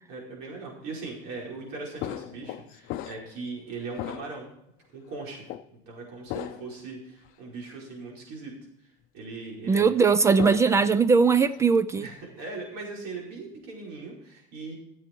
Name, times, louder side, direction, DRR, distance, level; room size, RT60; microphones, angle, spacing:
voice 1, 0.1-4.5 4.9-5.4 5.7-8.5 8.8-10.0 12.0-14.7, right 3 dB, 70° right, 4.8 m, -39 dB
sound 1, 2.0-3.5 3.9-4.6 5.5-5.7 6.3-6.8 7.2-7.3 10.0-10.9 11.3-11.7, left 14 dB, 60° left, 0.6 m, -37 dB
voice 2, 9.7-12.1, right 5 dB, 15° right, 0.4 m, -20 dB
14.5 x 7.8 x 4.5 m
cardioid pair, 145°, 16 cm